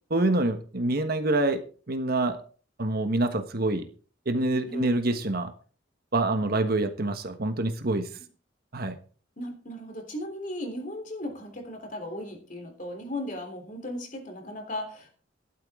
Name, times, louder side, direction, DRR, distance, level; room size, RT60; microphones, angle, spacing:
voice 1, 0.1-1.6 1.9-2.4 2.8-3.8 4.3-5.5 6.1-8.1 8.7-9.0, right 2 dB, 50° right, 8 dB, 1.3 m, -26 dB
voice 2, 4.7-5.0 8.1-8.2 9.4-15.1, left 1 dB, 45° left, 4 dB, 3.4 m, -36 dB
13.0 x 12.0 x 3.7 m, 0.40 s
head